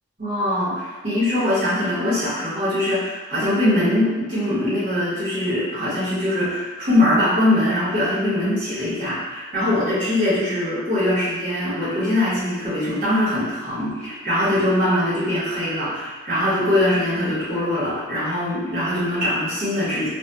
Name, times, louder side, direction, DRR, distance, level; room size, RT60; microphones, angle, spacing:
voice 1, 0.2-20.1, left 1 dB, 40° right, -12 dB, 1.1 m, -22 dB
2.6 x 2.4 x 2.2 m, 1.3 s
head